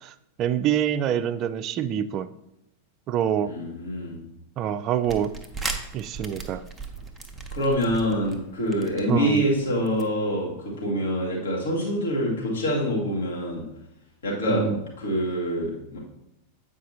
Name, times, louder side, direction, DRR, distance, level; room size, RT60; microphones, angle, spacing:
voice 1, 0.0-2.3 3.1-3.5 4.6-5.3 5.9-6.6 9.1-9.5 14.5-14.8, right 9 dB, 35° right, 13 dB, 0.3 m, -26 dB
voice 2, 3.4-4.2 7.5-13.7 14.2-16.0, equal, 65° left, -3 dB, 1.8 m, -26 dB
sound 1, 5.0-10.1, right 3 dB, 5° right, 0.8 m, -38 dB
8.3 x 4.9 x 2.7 m, 0.84 s
figure-of-eight pair, 90°, 0 cm